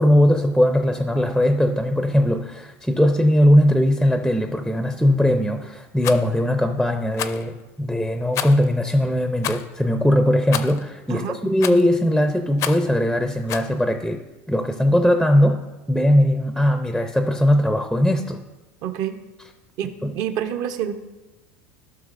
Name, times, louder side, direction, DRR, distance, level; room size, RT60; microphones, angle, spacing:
voice 1, 0.0-14.2 14.5-15.6 15.9-18.4 20.0-20.1, equal, ahead, 6 dB, 0.5 m, -19 dB
Rattle, 6.0-6.2 7.1-7.4 8.3-8.7 9.4-9.7 10.5-10.8 11.6-11.9 12.6-12.9 13.5-13.7, left 10 dB, 45° left, 0.5 m, -29 dB
voice 2, 18.8-19.2 19.8-20.9, right 10 dB, 60° right, 8 dB, 0.8 m, -27 dB
14.5 x 5.9 x 2.5 m, 1.1 s
supercardioid pair, 115°, 7 cm